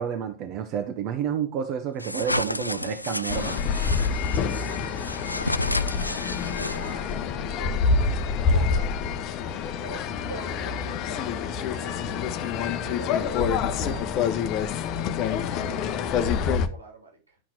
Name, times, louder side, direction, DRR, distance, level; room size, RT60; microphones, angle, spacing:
voice 1, 0.0-3.8, right 8 dB, 40° right, 5 dB, 1.2 m, -30 dB
sound 1, 2.0-7.1, left 1 dB, 85° left, 0.4 m, -31 dB
sound 2, 3.3-16.7, left 6 dB, 40° left, 0.9 m, -27 dB
voice 2, 5.8-8.9 9.8-12.0 12.6-14.4 15.6-17.4, right 3 dB, 80° right, 3 dB, 3.4 m, -44 dB
11.5 x 5.9 x 4.5 m, 0.34 s
figure-of-eight pair, 90°, 0 cm